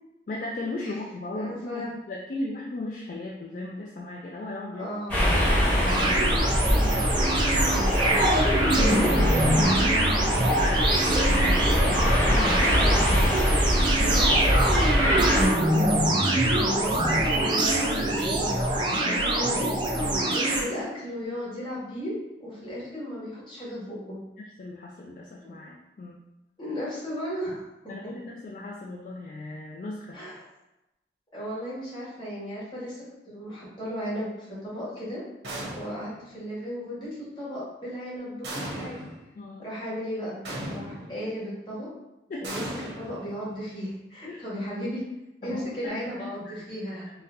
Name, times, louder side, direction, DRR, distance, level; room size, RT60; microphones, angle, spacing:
voice 1, 0.3-4.9 5.4-6.6 8.8-9.3 9.6-13.5 14.0-14.1 18.8-19.3 20.0-20.3 24.4-26.2 27.9-30.2 39.4-39.7 42.3-42.5 44.3-44.4 45.4-47.2, left 2 dB, 45° left, -2 dB, 0.3 m, -37 dB
voice 2, 1.3-1.9 4.8-5.2 7.5-8.3 9.0-10.1 14.0-19.7 20.3-24.2 25.4-25.5 26.6-27.6 30.1-30.4 31.3-35.2 35.7-39.0 39.6-40.4 40.6-41.9 42.4-42.6 43.0-45.0 45.4-47.1, equal, 25° left, -8 dB, 1.3 m, -35 dB
sound 1, 5.1-15.5, equal, 10° left, 0.9 m, -24 dB
sound 2, 5.9-20.6, right 1 dB, 25° right, 0.4 m, -24 dB
sound 3, 35.4-36.2 38.4-39.2 40.4-41.2 42.4-43.7, right 1 dB, 80° right, 0.9 m, -36 dB
4.0 x 2.2 x 2.6 m, 0.95 s
head